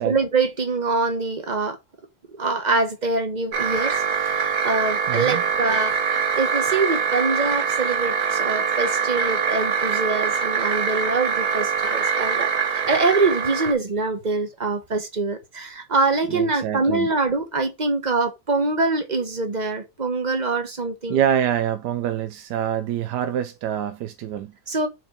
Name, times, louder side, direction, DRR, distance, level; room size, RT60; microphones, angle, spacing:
voice 1, 0.0-1.8 2.4-5.9 6.4-21.2 24.7-24.9, right 3 dB, 30° right, 1.0 m, -24 dB
sound 1, 3.5-13.7, right 6 dB, 65° right, 1.7 m, -23 dB
voice 2, 5.1-5.4 16.3-17.1 21.1-24.5, right 10 dB, 85° right, 1.2 m, -25 dB
4.6 x 4.4 x 5.0 m
omnidirectional pair, 1.8 m